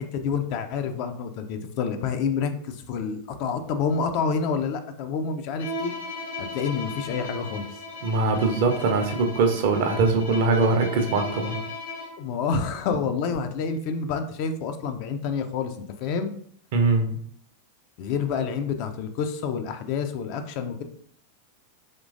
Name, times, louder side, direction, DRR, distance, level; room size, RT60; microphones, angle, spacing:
voice 1, 0.0-5.9 6.4-7.8 12.2-16.3 18.0-20.8, left 5 dB, 45° left, 7 dB, 0.4 m, -28 dB
Bowed string instrument, 5.6-12.3, left 2 dB, 65° left, 1.0 m, -36 dB
voice 2, 8.0-11.6 16.7-17.1, right 3 dB, 50° right, 4 dB, 0.6 m, -22 dB
3.7 x 3.0 x 2.5 m, 0.63 s
figure-of-eight pair, 90°, 0 cm